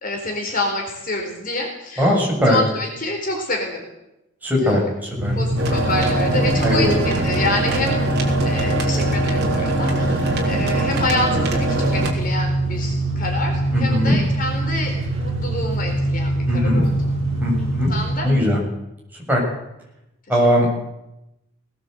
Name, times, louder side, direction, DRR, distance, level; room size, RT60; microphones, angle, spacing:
voice 1, 0.0-2.2 2.5-3.8 4.6-4.9 5.3-8.0 8.4-16.9 17.9-18.3, left 2 dB, 45° left, 2 dB, 4.2 m, -27 dB
voice 2, 2.0-2.6 4.4-5.3 6.3-6.9 13.7-14.2 16.5-16.8 17.4-17.9 18.2-18.6 19.3-19.4 20.3-20.7, equal, 10° right, -3 dB, 7.2 m, -19 dB
sound 1, 5.2-18.2, right 1 dB, 30° right, 4.4 m, -24 dB
sound 2, 5.6-12.1, right 1 dB, 55° right, 4.1 m, -23 dB
19.5 x 17.5 x 8.1 m, 0.89 s
head